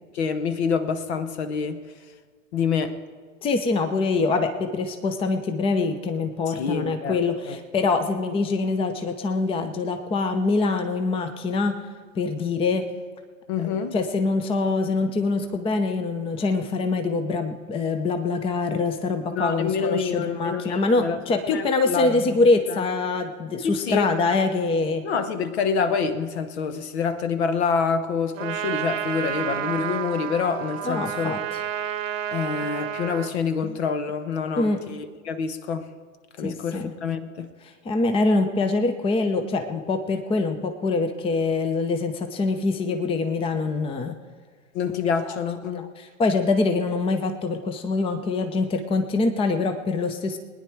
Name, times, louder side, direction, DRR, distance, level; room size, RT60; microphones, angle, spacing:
voice 1, 0.1-1.8 2.5-3.0 6.5-7.2 7.5-7.6 13.5-14.0 19.3-21.2 21.5-22.4 22.7-22.9 23.6-24.1 25.0-31.4 32.3-35.9 36.4-37.5 44.7-45.9, left 6 dB, 55° left, 11 dB, 1.1 m, -27 dB
voice 2, 3.4-11.8 12.2-12.8 13.6-25.0 30.8-31.6 33.6-33.8 34.6-34.8 36.4-36.9 37.8-44.2 45.7-50.4, left 3 dB, 15° left, 8 dB, 0.7 m, -24 dB
Trumpet, 28.4-33.4, right 9 dB, 70° right, 0.9 m, -30 dB
21.5 x 10.0 x 4.6 m, 1.5 s
figure-of-eight pair, 100°, 40 cm